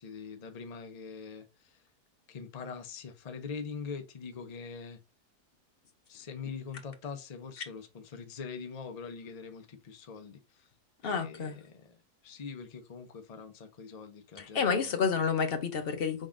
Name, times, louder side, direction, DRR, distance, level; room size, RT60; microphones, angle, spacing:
voice 1, 0.0-1.8 2.3-5.0 6.1-10.7 11.0-15.1, left 5 dB, 75° left, 0.3 m, -43 dB
voice 2, 11.0-11.6 14.4-16.3, left 6 dB, 50° left, 0.7 m, -29 dB
5.2 x 3.6 x 2.5 m
omnidirectional pair, 1.7 m